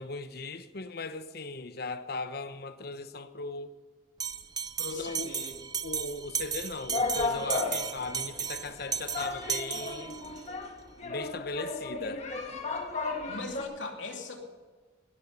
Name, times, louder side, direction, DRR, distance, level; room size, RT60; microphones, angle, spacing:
voice 1, 0.0-3.8 4.8-5.5 5.8-10.2 11.0-12.3, left 3 dB, 55° left, 0.9 m, -38 dB
Bell, 4.2-10.4, right 7 dB, 20° right, 0.5 m, -35 dB
voice 2, 4.8-5.5 13.3-14.7, left 3 dB, 80° left, 2.8 m, -40 dB
sound 1, 6.9-13.6, left 3 dB, 35° left, 2.0 m, -34 dB
18.0 x 11.0 x 5.6 m
head